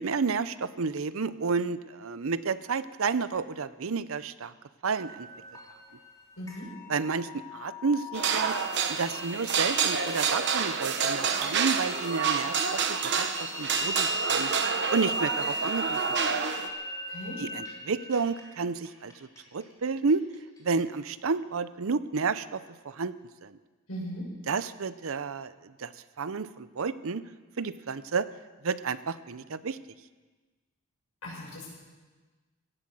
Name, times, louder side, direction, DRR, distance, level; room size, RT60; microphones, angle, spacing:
voice 1, 0.0-4.5 4.8-5.3 6.9-8.6 8.9-14.5 14.9-16.0 16.3-16.4 17.4-19.1 19.5-20.2 20.6-23.1 23.4-23.6 24.5-25.9 26.2-27.3 27.6-28.3 28.6-29.8, right 4 dB, 75° right, 15 dB, 0.6 m, -31 dB
sound 1, 4.9-20.8, equal, 15° left, 3.4 m, -37 dB
voice 2, 6.4-6.7 17.1-17.4 23.9-24.3 31.2-31.7, equal, 90° left, -2 dB, 6.4 m, -38 dB
sound 2, 8.1-16.7, right 6 dB, 55° right, 1.1 m, -29 dB
17.0 x 11.0 x 7.6 m, 1.3 s
head